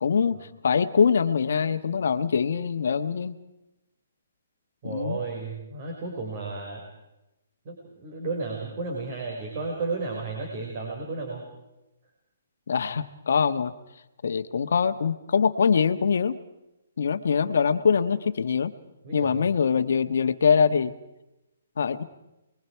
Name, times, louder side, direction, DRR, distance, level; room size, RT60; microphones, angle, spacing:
voice 1, 0.0-0.4 0.6-3.3 4.8-5.2 12.7-13.7 14.2-16.4 17.0-18.7 19.1-20.9 21.8-22.0, left 6 dB, 70° left, 10 dB, 1.4 m, -23 dB
voice 2, 4.8-6.8 7.6-11.4 19.0-19.4, right 3 dB, 35° right, 0 dB, 4.9 m, -33 dB
29.5 x 22.5 x 4.7 m, 0.93 s
hypercardioid pair, 160°, 0 cm